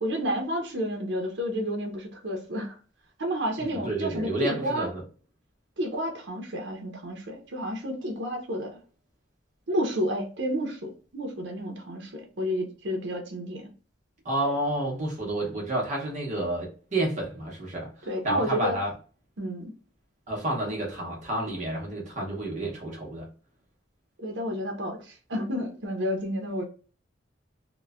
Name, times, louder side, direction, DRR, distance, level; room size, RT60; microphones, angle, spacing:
voice 1, 0.0-2.8 3.2-4.9 5.8-8.8 9.7-13.7 18.1-18.8 19.4-19.7 20.7-20.8 24.2-26.6, equal, 70° right, 2 dB, 0.7 m, -30 dB
voice 2, 3.6-5.0 14.2-18.9 20.3-23.3, right 1 dB, 40° right, -2 dB, 0.9 m, -30 dB
3.0 x 2.1 x 2.3 m, 0.38 s
head